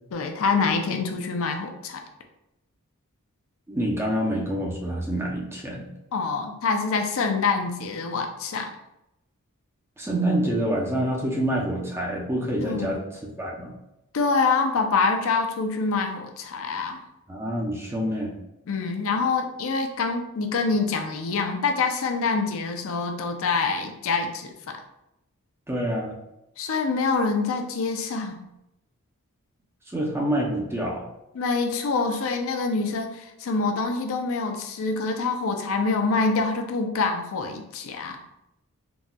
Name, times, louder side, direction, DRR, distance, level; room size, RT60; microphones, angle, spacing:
voice 1, 0.1-2.0 6.1-8.7 12.6-13.0 14.1-17.0 18.7-24.5 26.6-28.4 31.3-38.2, left 4 dB, 65° left, 4 dB, 0.4 m, -25 dB
voice 2, 3.7-5.9 10.0-13.0 13.4-13.7 17.3-18.4 25.7-26.1 29.9-31.1, right 1 dB, 10° right, -2 dB, 0.5 m, -27 dB
4.0 x 2.3 x 2.2 m, 0.89 s
head